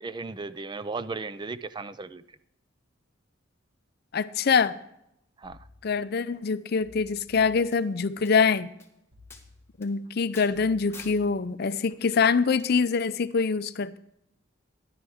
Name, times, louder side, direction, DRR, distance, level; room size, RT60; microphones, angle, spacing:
voice 1, 0.0-2.2 5.4-5.6, right 3 dB, 25° right, 0.4 m, -36 dB
voice 2, 4.1-4.8 5.8-8.7 9.8-14.0, left 5 dB, 55° left, 0.5 m, -24 dB
sound 1, 5.4-6.4 6.8-8.3 9.1-10.1 10.5-11.9 12.4-12.7, left 2 dB, 40° right, 2.1 m, -55 dB
sound 2, 7.7-7.8 8.2-8.3 8.8-8.9 9.3-9.4 9.8-9.9 10.3-10.5 10.9-11.2 12.6-12.7, left 4 dB, 15° left, 1.5 m, -46 dB
13.0 x 11.5 x 3.6 m
head